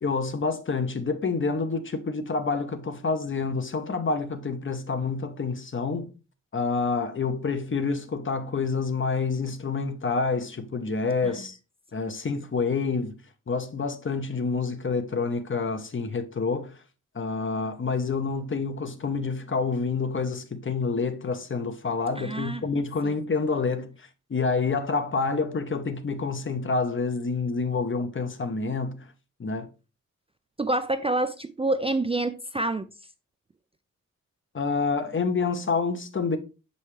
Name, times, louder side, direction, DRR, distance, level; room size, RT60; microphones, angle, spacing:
voice 1, 0.0-6.1 6.5-11.6 11.9-13.2 13.5-16.7 17.1-29.1 29.4-29.7 34.5-36.4, left 4 dB, 40° left, 0.7 m, -28 dB
voice 2, 22.2-22.6 23.0-23.1 30.6-32.9, right 2 dB, 20° right, 0.3 m, -27 dB
5.6 x 5.4 x 3.1 m
wide cardioid pair, 105°, 31 cm